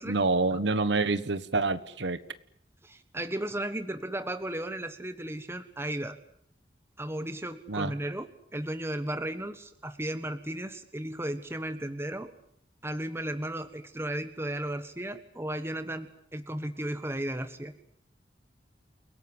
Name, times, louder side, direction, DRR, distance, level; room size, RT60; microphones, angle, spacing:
voice 1, 0.1-2.2 7.7-7.9, right 3 dB, 75° right, 14 dB, 1.4 m, -27 dB
voice 2, 2.8-6.2 7.0-12.3 12.8-17.7, right 1 dB, 15° right, 9 dB, 1.4 m, -35 dB
29.0 x 17.5 x 9.9 m, 0.66 s
head